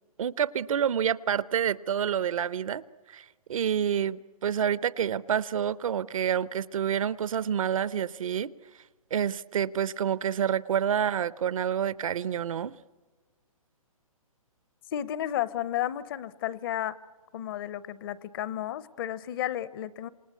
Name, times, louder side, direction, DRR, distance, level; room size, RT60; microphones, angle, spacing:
voice 1, 0.2-2.8 3.1-8.5 9.1-12.8, right 8 dB, 65° right, 0.8 m, -28 dB
voice 2, 14.9-17.0 17.3-20.1, left 12 dB, 40° left, 0.8 m, -32 dB
27.5 x 26.0 x 8.3 m
hypercardioid pair, 145°, 19 cm